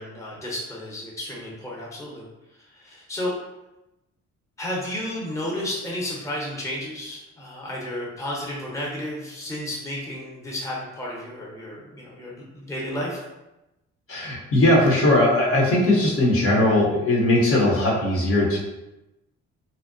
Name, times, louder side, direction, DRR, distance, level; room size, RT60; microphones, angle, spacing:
voice 1, 0.0-2.2 2.7-3.3 4.6-13.2, left 1 dB, 10° left, -4 dB, 0.7 m, -32 dB
voice 2, 14.1-18.6, left 1 dB, 50° left, -3 dB, 0.7 m, -19 dB
2.6 x 2.0 x 2.4 m, 0.96 s
cardioid pair, 90°, 30 cm